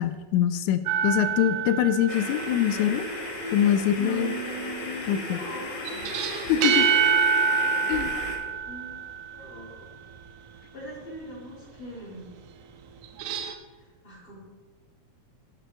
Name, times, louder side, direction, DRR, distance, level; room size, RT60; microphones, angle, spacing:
voice 1, 0.0-3.1 3.5-4.3 5.1-5.4 6.5-6.9 7.9-8.1, left 10 dB, 90° left, 11 dB, 2.0 m, -24 dB
sound 1, 0.9-2.8 5.9-9.5 13.0-13.5, right 6 dB, 85° right, 2.1 m, -26 dB
sound 2, 2.1-8.4, left 2 dB, 45° left, 1.8 m, -35 dB
voice 2, 3.9-6.7 8.6-9.9 10.7-12.3 14.0-14.4, right 2 dB, 20° left, -6 dB, 2.9 m, -40 dB
12.5 x 7.5 x 3.3 m, 1.3 s
omnidirectional pair, 3.4 m